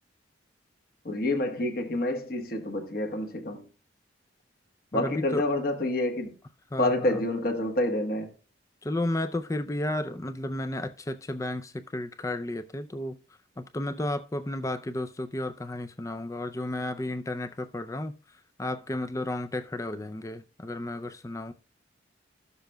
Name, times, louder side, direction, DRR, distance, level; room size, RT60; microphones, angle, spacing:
voice 1, 1.0-3.6 4.9-6.3 6.8-8.3, left 1 dB, 50° left, 1.2 m, -28 dB
voice 2, 4.9-5.5 6.7-7.1 8.8-13.2 13.6-18.1 18.6-21.5, left 1 dB, 15° left, 0.4 m, -32 dB
14.0 x 6.9 x 2.2 m
head